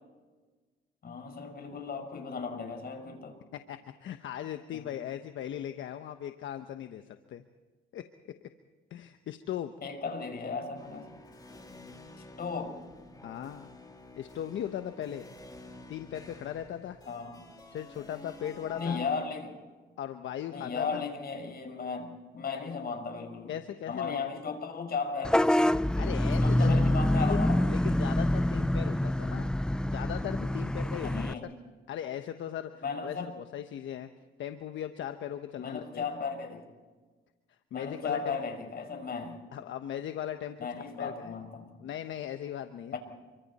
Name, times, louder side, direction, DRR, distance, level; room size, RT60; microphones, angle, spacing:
voice 1, 1.0-3.4 4.7-4.9 9.8-11.1 12.4-12.8 17.1-17.5 18.7-19.6 20.5-23.5 23.9-25.8 26.4-27.6 31.0-31.5 32.8-33.3 35.6-36.6 37.7-39.4 40.6-41.7 42.9-43.0, left 5 dB, 50° left, 6 dB, 5.5 m, -35 dB
voice 2, 3.5-7.0 7.3-7.4 7.9-8.0 8.9-9.7 13.2-13.7 14.2-15.2 15.9-17.0 17.7-19.0 20.0-21.0 23.5-24.3 26.0-26.9 27.2-29.5 29.8-31.5 31.9-34.1 34.4-36.1 37.7-38.4 39.5-41.3 41.8-43.0, left 10 dB, 75° left, 8 dB, 1.1 m, -38 dB
sound 1, 10.8-19.1, left 2 dB, 20° left, 3.7 m, -49 dB
Vehicle horn car horn honking / Bus, 25.2-31.3, left 1 dB, 5° left, 0.6 m, -26 dB
29.5 x 24.0 x 4.3 m, 1.3 s
cardioid pair, 90°, 20 cm